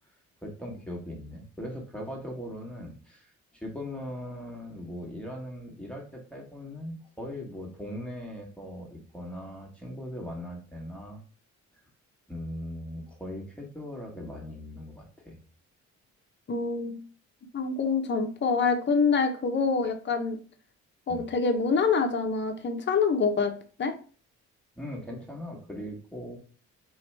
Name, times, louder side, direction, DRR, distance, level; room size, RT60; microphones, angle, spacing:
voice 1, 0.4-3.3 3.5-11.2 12.3-15.4 21.1-21.3 24.8-26.4, equal, 5° left, -2 dB, 1.3 m, -39 dB
voice 2, 16.5-17.0 17.5-20.4 21.1-23.5 23.8-23.9, left 5 dB, 35° left, 5 dB, 0.8 m, -26 dB
3.2 x 2.9 x 4.4 m, 0.39 s
cardioid pair, 90°, 30 cm